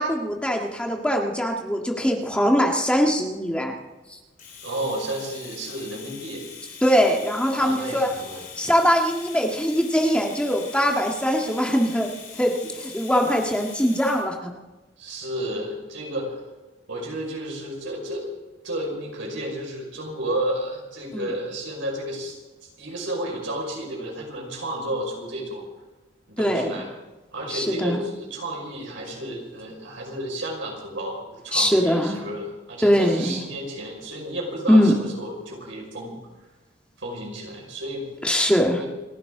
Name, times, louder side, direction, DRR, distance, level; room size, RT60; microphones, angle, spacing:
voice 1, 0.0-3.7 4.1-4.2 6.8-8.1 8.6-12.1 12.4-14.5 21.1-21.3 26.4-26.7 27.5-28.0 31.5-32.2 32.8-33.4 34.7-34.9 38.2-38.8, equal, 5° left, 1 dB, 1.7 m, -21 dB
Domestic sounds home sounds, 4.4-14.3, left 6 dB, 45° left, 5.0 m, -42 dB
voice 2, 4.6-6.4 7.5-8.5 15.0-16.4 16.9-18.3 18.6-22.4 22.8-25.6 26.4-26.9 27.3-36.2 37.0-38.1 38.7-38.9, right 1 dB, 85° right, 0 dB, 5.6 m, -32 dB
29.5 x 11.5 x 3.9 m, 1.2 s
head